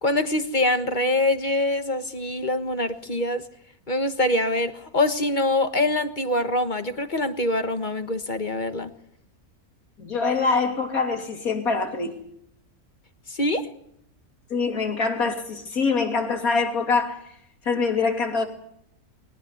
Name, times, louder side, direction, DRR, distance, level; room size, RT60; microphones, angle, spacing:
voice 1, 0.0-3.4 3.9-8.9 13.3-13.7, left 1 dB, 35° left, 1.4 m, -24 dB
voice 2, 10.0-12.1 14.5-17.2 17.6-18.5, left 4 dB, 70° left, 3.4 m, -24 dB
22.0 x 18.0 x 9.6 m
omnidirectional pair, 1.6 m